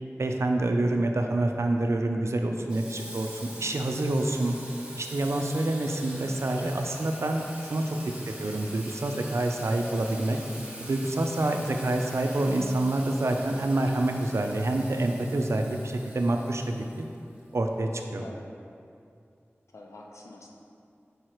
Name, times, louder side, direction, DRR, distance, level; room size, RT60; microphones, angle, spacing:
voice 1, 0.2-4.6 4.9-7.4 7.7-8.0 8.3-10.4 10.8-17.1 17.5-18.2, right 2 dB, 75° right, 3 dB, 0.5 m, -27 dB
Water tap faucet / Sink (filling or washing), 2.7-17.5, right 1 dB, 20° right, 1.2 m, -44 dB
voice 2, 19.7-20.5, left 2 dB, 90° left, -1 dB, 0.7 m, -48 dB
4.8 x 4.7 x 4.5 m, 2.5 s
wide cardioid pair, 50°, 5 cm